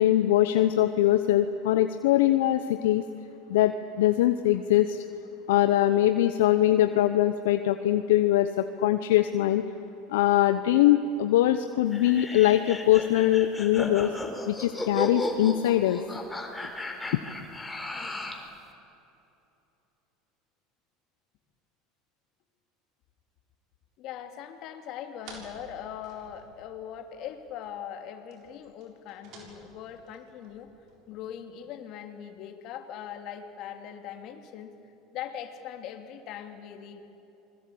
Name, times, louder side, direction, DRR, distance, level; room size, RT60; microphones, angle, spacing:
voice 1, 0.0-3.0 3.5-5.0 5.5-9.6 10.1-14.1 14.5-16.0 17.1-17.2, left 13 dB, 80° left, 9 dB, 0.9 m, -22 dB
sound 1, 11.9-18.5, left 1 dB, 10° left, 4.0 m, -35 dB
voice 2, 24.0-30.7 31.1-34.7 35.1-37.0, left 9 dB, 60° left, 6 dB, 2.8 m, -40 dB
sound 2, 25.2-27.0 27.3-27.4 27.6-27.7 28.3-31.3, right 3 dB, 60° right, 6.7 m, -52 dB
27.0 x 21.0 x 8.6 m, 3.0 s
hypercardioid pair, 90°, 0 cm